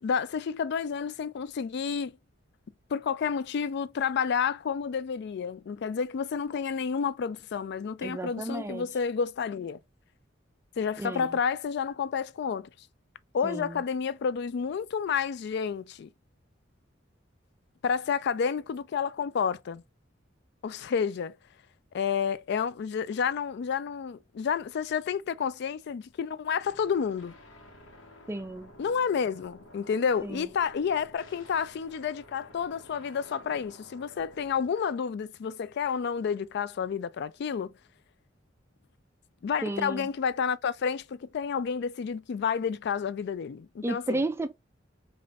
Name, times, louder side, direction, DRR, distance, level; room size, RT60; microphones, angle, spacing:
voice 1, 0.0-2.1 2.9-9.8 10.8-12.7 13.3-16.1 17.8-19.8 20.6-21.4 21.9-27.3 28.8-37.7 39.4-44.2, left 6 dB, 60° left, 0.3 m, -30 dB
voice 2, 8.0-8.9 11.0-11.3 13.4-13.8 28.3-28.7 30.2-30.5 39.6-40.1 43.8-44.5, right 2 dB, 15° right, 0.4 m, -33 dB
sound 1, 26.7-34.7, left 1 dB, 85° left, 1.1 m, -52 dB
5.1 x 2.5 x 2.5 m
head